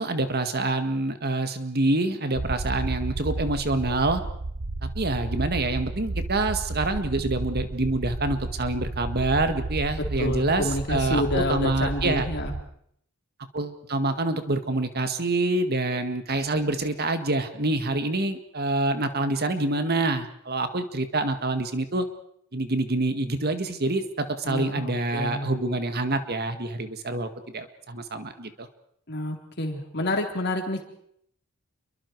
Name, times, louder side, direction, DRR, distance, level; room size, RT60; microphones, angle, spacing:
voice 1, 0.0-4.2 4.8-12.3 13.5-22.0 22.5-28.7, right 2 dB, 45° right, 8 dB, 1.9 m, -26 dB
sound 1, 2.3-12.6, right 2 dB, 70° right, 1.1 m, -32 dB
voice 2, 10.2-12.5 24.4-25.5 29.1-30.8, left 1 dB, 50° left, 3 dB, 3.9 m, -28 dB
28.5 x 23.5 x 4.7 m, 0.68 s
head